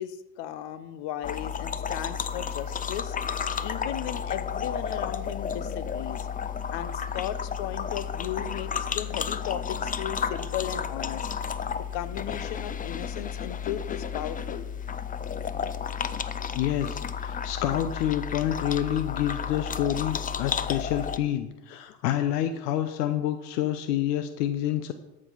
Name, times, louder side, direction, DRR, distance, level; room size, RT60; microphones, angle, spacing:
voice 1, 0.0-3.1 3.6-6.3 6.7-11.3 11.9-14.7, left 11 dB, 60° left, 13 dB, 1.0 m, -36 dB
sound 1, 1.2-21.2, left 7 dB, 20° left, 0.5 m, -32 dB
voice 2, 16.5-24.9, left 11 dB, 80° left, 10 dB, 0.8 m, -28 dB
13.0 x 5.3 x 5.6 m, 1.0 s
hypercardioid pair, 85°, 48 cm